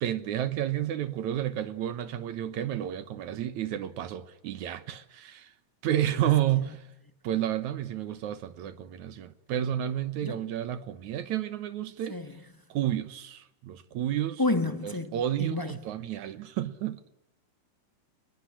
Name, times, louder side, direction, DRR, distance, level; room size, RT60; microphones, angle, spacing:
voice 1, 0.0-5.5 5.8-6.8 7.2-12.2 12.7-14.4 14.8-17.1, right 11 dB, 70° right, 2.4 m, -31 dB
voice 2, 12.1-12.4 14.4-15.8, left 2 dB, 15° left, 0.9 m, -30 dB
28.5 x 20.5 x 10.0 m
omnidirectional pair, 3.6 m